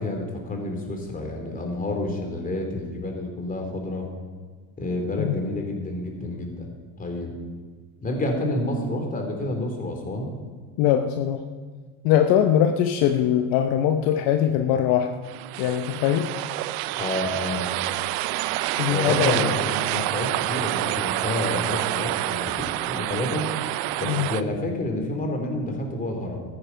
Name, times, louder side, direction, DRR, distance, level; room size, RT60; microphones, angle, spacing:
voice 1, 0.0-4.1 4.8-6.7 7.0-7.3 8.0-10.3 17.0-17.8 18.9-22.5 22.9-23.5 24.0-26.5, left 1 dB, 20° left, 3 dB, 3.0 m, -29 dB
voice 2, 10.8-11.4 12.0-15.1 15.6-16.3 18.8-19.5 24.1-24.3, left 10 dB, 55° left, 6 dB, 0.9 m, -21 dB
sound 1, 15.2-24.4, right 16 dB, 55° right, 0.6 m, -27 dB
14.5 x 9.8 x 5.7 m, 1.5 s
supercardioid pair, 115°, 44 cm